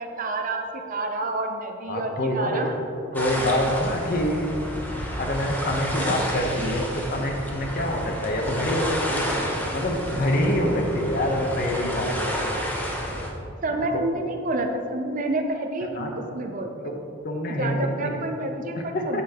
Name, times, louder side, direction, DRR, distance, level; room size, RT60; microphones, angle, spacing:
voice 1, 0.0-2.7 10.5-10.8 13.6-16.9 17.6-19.2, right 2 dB, 40° right, 4 dB, 0.5 m, -29 dB
voice 2, 1.9-2.7 3.1-4.5 4.9-9.3 9.7-12.5 13.7-13.9 15.9-16.2 17.2-17.9 18.7-19.2, left 1 dB, 45° left, 2 dB, 0.9 m, -26 dB
sound 1, 3.1-13.3, equal, 10° left, 0.8 m, -30 dB
8.2 x 8.1 x 2.9 m, 2.8 s
head